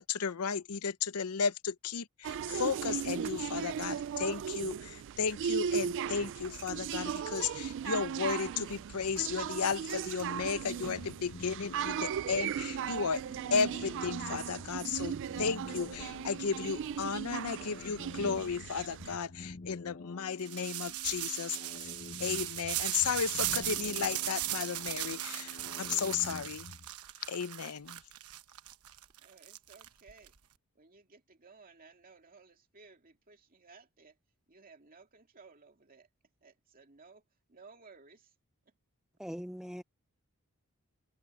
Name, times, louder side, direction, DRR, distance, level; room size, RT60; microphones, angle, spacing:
voice 1, 0.0-13.2 13.5-21.9 22.2-26.7 27.3-28.0, left 6 dB, 90° left, 0.7 m, -34 dB
sound 1, 2.2-19.2, right 8 dB, 55° right, 0.3 m, -37 dB
sound 2, 10.9-26.9, left 2 dB, 45° left, 0.8 m, -49 dB
sound 3, 20.4-30.3, right 14 dB, 85° right, 1.1 m, -37 dB
voice 2, 29.2-30.4 30.7-34.2 34.5-36.1 36.4-38.3 38.7-38.8, right 4 dB, 40° right, 2.5 m, -58 dB
voice 3, 39.2-39.8, equal, 5° right, 0.5 m, -41 dB
head